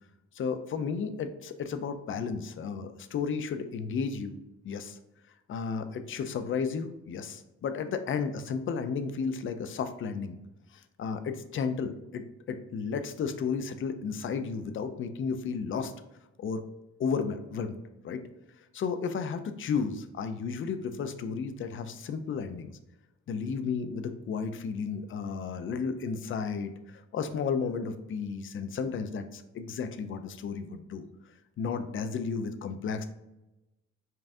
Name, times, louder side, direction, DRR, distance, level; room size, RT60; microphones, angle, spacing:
voice 1, 0.3-4.4 4.6-5.0 5.5-10.4 10.7-15.9 16.4-16.6 17.0-17.8 18.0-18.2 18.7-22.7 23.3-31.0 31.6-33.1, left 5 dB, 45° left, 9 dB, 0.4 m, -33 dB
5.4 x 2.4 x 2.6 m, 0.96 s
cardioid pair, 90°, 30 cm